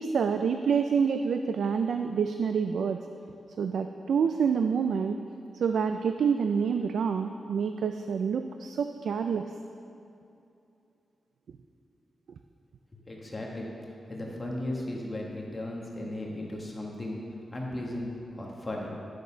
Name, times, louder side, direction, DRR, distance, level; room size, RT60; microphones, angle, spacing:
voice 1, 0.0-3.0 3.6-5.2 5.5-9.4, right 6 dB, 75° right, 7 dB, 0.3 m, -27 dB
voice 2, 12.9-13.7 14.1-17.2 17.5-18.9, left 1 dB, 20° left, -2 dB, 1.3 m, -36 dB
11.5 x 6.5 x 5.6 m, 2.7 s
wide cardioid pair, 170°, 0 cm